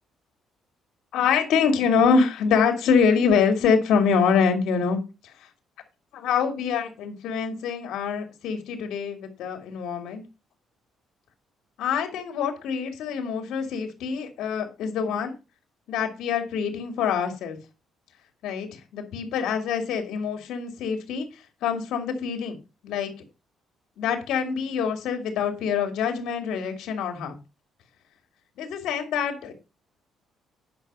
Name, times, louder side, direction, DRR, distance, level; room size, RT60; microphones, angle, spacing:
voice 1, 1.1-5.0 6.1-10.2 11.8-15.3 15.9-17.6 18.4-21.3 21.6-22.6 22.8-23.1 24.0-27.4 28.6-29.5, left 6 dB, 75° left, 6 dB, 2.8 m, -25 dB
9.6 x 6.0 x 5.5 m, 0.30 s
cardioid pair, 120°, 0 cm